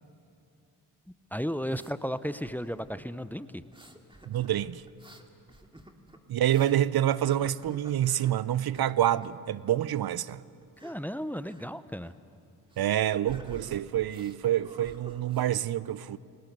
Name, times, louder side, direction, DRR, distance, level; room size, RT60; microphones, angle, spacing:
sound 1, 1.0-2.0 2.4-3.1 3.6-6.8 7.2-8.4 8.7-9.4 10.6-11.0 11.4-11.7 12.0-12.1 12.7-14.4 14.6-15.5, right 1 dB, 10° right, 2.4 m, -51 dB
voice 1, 1.3-3.6 10.8-12.1, equal, 5° left, 0.8 m, -34 dB
voice 2, 4.3-4.8 6.3-10.4 12.8-16.2, right 12 dB, 55° right, 0.7 m, -27 dB
29.0 x 18.0 x 6.8 m
supercardioid pair, 45°, 43 cm